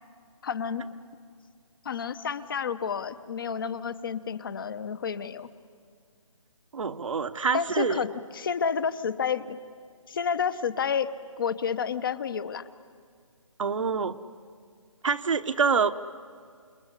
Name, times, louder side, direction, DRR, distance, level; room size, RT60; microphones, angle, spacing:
voice 1, 0.4-0.9 1.8-5.5 7.5-9.6 10.1-11.1 11.4-12.7, left 6 dB, 40° left, 13 dB, 0.9 m, -30 dB
voice 2, 6.7-8.0 13.6-14.2 15.0-15.9, right 5 dB, 70° right, 8 dB, 1.2 m, -26 dB
28.0 x 21.0 x 9.9 m, 2.1 s
hypercardioid pair, 165°, 17 cm